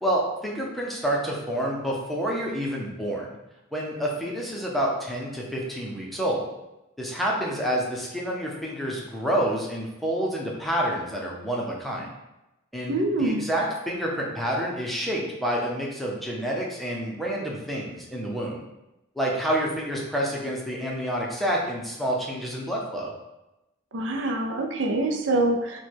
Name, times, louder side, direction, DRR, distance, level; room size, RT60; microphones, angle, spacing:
voice 1, 0.0-3.3 3.7-6.4 7.0-12.1 12.7-18.6 19.2-23.1, equal, ahead, -3 dB, 0.6 m, -28 dB
voice 2, 12.9-13.5 23.9-25.8, right 2 dB, 60° right, 3 dB, 0.5 m, -25 dB
4.6 x 2.3 x 4.4 m, 0.95 s
head